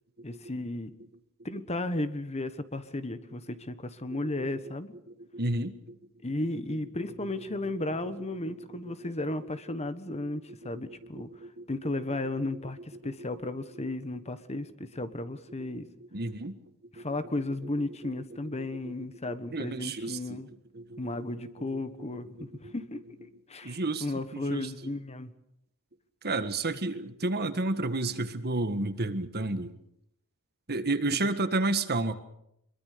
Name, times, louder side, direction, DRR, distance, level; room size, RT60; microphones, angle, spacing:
voice 1, 0.2-0.9 1.4-4.9 6.2-11.3 11.7-15.9 16.9-20.5 21.0-25.3, left 2 dB, 30° left, 11 dB, 1.4 m, -34 dB
voice 2, 5.3-6.0 10.9-11.0 11.4-11.6 16.1-16.6 17.0-17.1 18.6-18.7 19.3-20.4 20.7-21.0 22.6-22.7 23.6-24.0 24.3-24.7 26.2-29.7 30.7-32.1, right 2 dB, 45° right, 10 dB, 1.6 m, -31 dB
24.5 x 22.5 x 6.8 m, 0.78 s
head